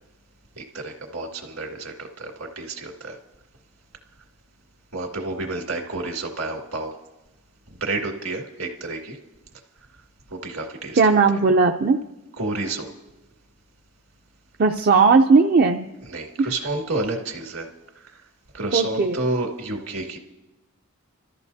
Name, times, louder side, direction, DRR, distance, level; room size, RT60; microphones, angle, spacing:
voice 1, 0.6-3.2 4.9-7.0 7.8-9.2 10.3-11.2 12.4-12.9 16.1-17.7 18.5-20.2, right 2 dB, 65° right, 1 dB, 2.1 m, -30 dB
voice 2, 10.9-12.0 14.6-15.9 16.4-16.5 18.7-19.2, right 4 dB, 45° right, 3 dB, 0.5 m, -17 dB
28.0 x 13.5 x 2.7 m, 1.0 s
head